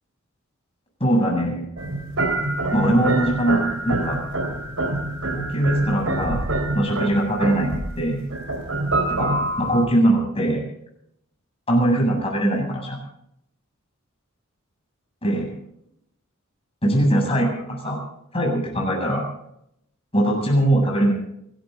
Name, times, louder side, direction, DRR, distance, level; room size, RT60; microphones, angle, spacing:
voice 1, 1.0-1.7 2.7-4.2 5.3-6.4 6.7-8.2 9.2-10.6 11.7-13.0 15.2-15.5 16.8-18.0 18.3-19.2 20.1-21.1, right 1 dB, 30° left, 0 dB, 7.7 m, -21 dB
sound 1, 1.8-9.9, right 2 dB, 80° right, 3.9 m, -26 dB
28.5 x 13.0 x 3.9 m, 0.75 s
head